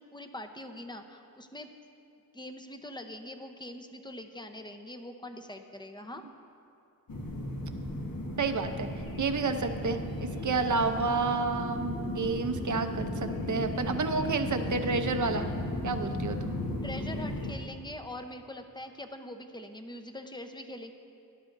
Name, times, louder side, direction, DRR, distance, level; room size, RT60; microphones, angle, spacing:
voice 1, 0.0-1.7 2.3-6.3 16.8-20.9, left 1 dB, 10° left, 6 dB, 0.8 m, -43 dB
sound 1, 7.1-17.5, left 1 dB, 65° left, 1.4 m, -35 dB
voice 2, 8.4-8.9 9.2-15.5 15.8-16.5, right 4 dB, 55° right, 7 dB, 0.8 m, -30 dB
17.5 x 11.5 x 2.6 m, 2.6 s
wide cardioid pair, 65°, 36 cm